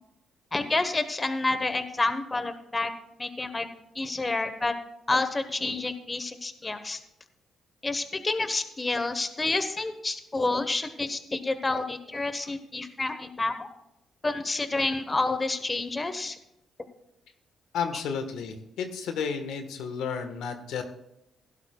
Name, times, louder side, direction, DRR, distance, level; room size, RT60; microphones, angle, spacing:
voice 1, 0.5-2.9 3.2-3.7 3.9-4.7 5.1-7.0 7.8-13.7 14.2-16.4 17.9-18.0, left 2 dB, 20° left, 9 dB, 1.0 m, -29 dB
voice 2, 17.7-20.8, left 6 dB, 90° left, 7 dB, 1.3 m, -32 dB
16.5 x 11.5 x 2.3 m, 0.85 s
cardioid pair, 100°, 0 cm